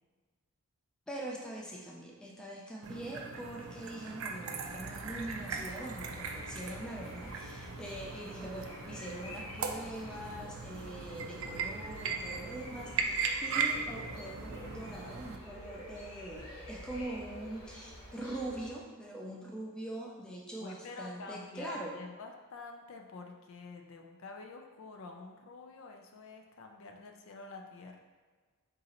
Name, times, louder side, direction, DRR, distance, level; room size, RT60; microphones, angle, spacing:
voice 1, 1.1-22.0, right 1 dB, 5° left, -3 dB, 0.4 m, -43 dB
sound 1, 2.8-15.4, right 5 dB, 60° right, 0.4 m, -39 dB
sound 2, 4.6-18.7, left 1 dB, 80° left, 0.9 m, -49 dB
voice 2, 20.6-28.0, left 3 dB, 60° left, 3 dB, 0.4 m, -48 dB
3.9 x 2.7 x 4.1 m, 1.5 s
head